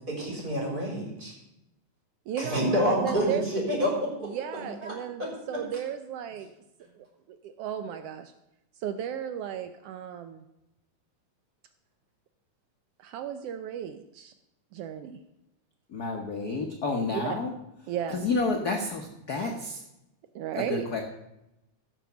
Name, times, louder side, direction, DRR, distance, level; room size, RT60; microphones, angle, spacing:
voice 1, 0.1-1.3 2.4-4.9 5.2-5.3, equal, 30° right, -2 dB, 4.1 m, -28 dB
voice 2, 2.3-3.5 4.2-6.5 6.9-8.3 8.8-10.4 13.0-14.3 14.7-15.2 17.1-17.4 17.9-18.3 20.3-20.8, right 9 dB, 85° right, 9 dB, 1.3 m, -35 dB
voice 3, 15.9-17.5 18.1-19.8 20.5-21.0, left 3 dB, 60° left, 2 dB, 1.0 m, -30 dB
15.5 x 6.1 x 6.9 m, 0.89 s
omnidirectional pair, 3.4 m